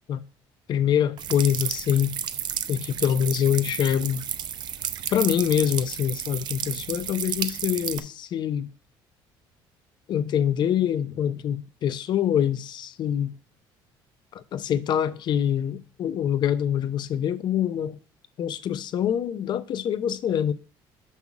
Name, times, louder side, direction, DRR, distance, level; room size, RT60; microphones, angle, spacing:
voice 1, 0.7-2.1 2.7-4.2 5.1-8.7 10.1-13.3 14.3-18.0 18.4-20.5, left 9 dB, 50° left, 0.6 m, -25 dB
sound 1, 1.2-8.0, right 9 dB, 50° right, 0.6 m, -32 dB
6.0 x 5.6 x 4.7 m
cardioid pair, 110°, 9 cm